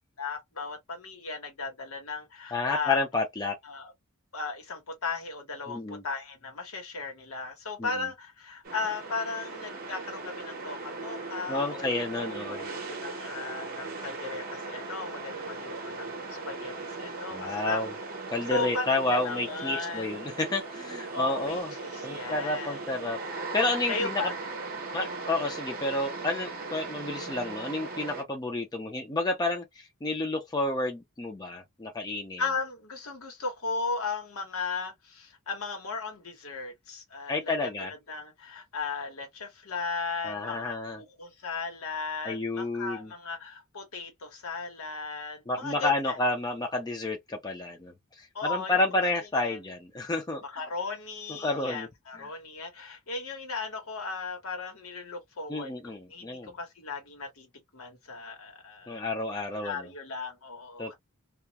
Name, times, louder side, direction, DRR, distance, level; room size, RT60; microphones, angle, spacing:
voice 1, 0.2-3.0 3.6-3.9 4.3-11.9 12.3-17.8 18.5-20.2 21.1-21.6 21.9-22.8 23.9-24.3 32.4-46.2 48.3-48.7 49.4-49.6 50.4-59.0 59.6-60.9, left 4 dB, 75° left, 1.0 m, -36 dB
voice 2, 2.5-3.6 5.7-6.0 7.8-7.9 11.5-12.6 17.3-17.9 18.3-21.7 22.0-23.2 23.5-24.2 24.9-32.4 37.3-37.9 40.2-41.0 42.2-43.1 45.5-50.4 51.3-51.9 52.2-52.3 55.5-56.5 58.9-59.9 60.8-60.9, left 2 dB, 20° left, 0.4 m, -30 dB
sound 1, 8.6-28.2, right 3 dB, 40° right, 0.7 m, -38 dB
2.3 x 2.1 x 2.7 m
head